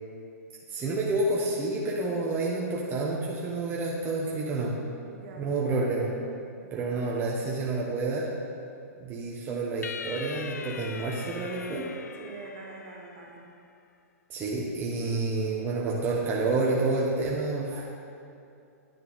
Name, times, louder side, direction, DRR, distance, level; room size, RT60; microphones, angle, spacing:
voice 1, 0.7-4.7 5.4-6.1 6.7-8.3 9.0-11.8 14.3-17.8, right 3 dB, 25° right, -4 dB, 1.1 m, -29 dB
voice 2, 5.1-5.5 6.6-6.9 12.2-13.5 17.7-17.8, right 3 dB, 50° right, -1 dB, 1.8 m, -45 dB
sound 1, 9.8-13.4, left 6 dB, 90° left, 0.4 m, -41 dB
9.9 x 6.7 x 4.1 m, 2.5 s
hypercardioid pair, 125°, 9 cm